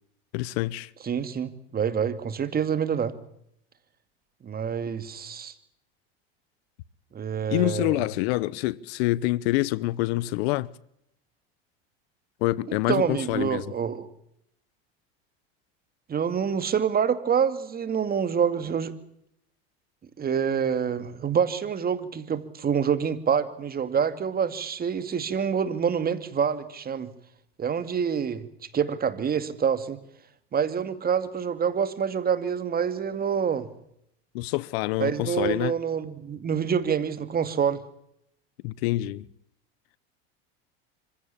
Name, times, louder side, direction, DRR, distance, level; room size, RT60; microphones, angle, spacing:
voice 1, 0.3-0.9 7.5-10.7 12.4-13.6 34.3-35.7 38.6-39.2, left 18 dB, 75° left, 1.0 m, -26 dB
voice 2, 1.0-3.1 4.4-5.5 7.1-8.0 12.7-14.1 16.1-18.9 20.2-27.1 27.6-28.5 28.7-30.0 30.5-33.7 35.0-37.8, right 7 dB, 30° right, 2.5 m, -26 dB
25.5 x 16.5 x 8.6 m
supercardioid pair, 105°, 31 cm